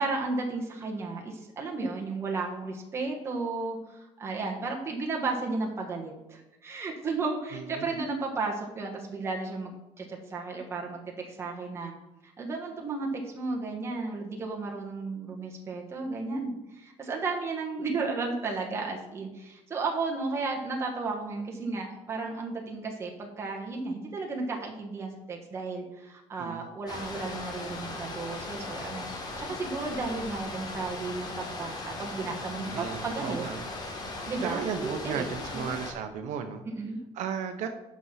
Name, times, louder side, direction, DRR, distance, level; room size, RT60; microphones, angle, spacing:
voice 1, 0.0-11.9 12.2-33.4 34.3-35.3 35.5-35.7 36.8-37.0, right 3 dB, 20° right, -1 dB, 1.2 m, -34 dB
voice 2, 7.5-8.0 26.4-26.7 32.7-33.6 34.4-36.6 37.1-37.7, right 7 dB, 70° right, 6 dB, 0.8 m, -35 dB
sound 1, 26.9-35.9, left 2 dB, 30° left, 1.5 m, -38 dB
8.3 x 6.1 x 5.7 m, 0.96 s
cardioid pair, 175°, 13 cm